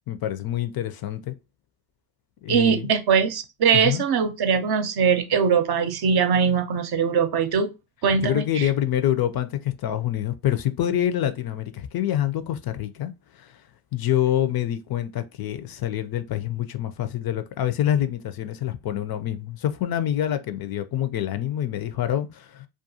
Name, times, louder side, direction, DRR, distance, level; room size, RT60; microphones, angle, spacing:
voice 1, 0.1-1.3 2.4-2.9 3.7-4.0 8.2-13.6 13.9-22.7, left 11 dB, 50° left, 0.4 m, -26 dB
voice 2, 2.5-7.7 8.0-8.7, right 6 dB, 55° right, 0.6 m, -21 dB
2.4 x 2.3 x 2.7 m
supercardioid pair, 50°, 47 cm